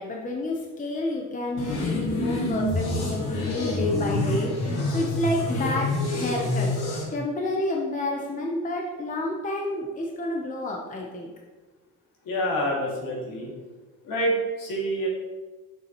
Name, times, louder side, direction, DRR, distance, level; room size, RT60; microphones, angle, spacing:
voice 1, 0.0-5.9 6.2-6.8 7.1-11.3, left 2 dB, 20° left, -1 dB, 0.8 m, -29 dB
sound 1, 1.6-7.0, left 2 dB, 80° left, 2.0 m, -27 dB
voice 2, 12.2-13.5 14.0-15.1, equal, 65° left, -3 dB, 2.4 m, -27 dB
7.4 x 6.6 x 3.0 m, 1.2 s
cardioid pair, 130°, 37 cm